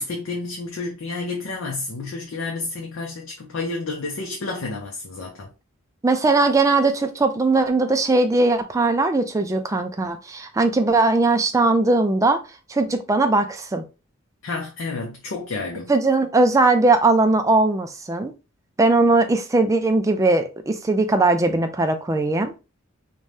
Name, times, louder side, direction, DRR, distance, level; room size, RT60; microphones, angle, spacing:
voice 1, 0.0-5.5 14.4-15.9, left 3 dB, 70° left, 0.6 m, -30 dB
voice 2, 6.0-12.4 12.7-13.8 15.9-18.3 18.8-22.6, right 2 dB, 15° right, 0.3 m, -19 dB
2.7 x 2.2 x 3.2 m
head